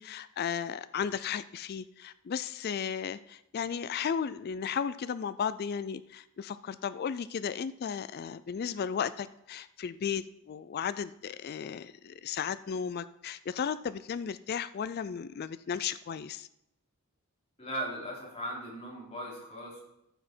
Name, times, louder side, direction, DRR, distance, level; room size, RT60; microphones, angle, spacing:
voice 1, 0.0-16.5, left 7 dB, 45° left, 14 dB, 0.3 m, -35 dB
voice 2, 17.6-19.8, right 1 dB, 30° left, -3 dB, 3.4 m, -38 dB
14.0 x 6.2 x 4.4 m, 0.82 s
head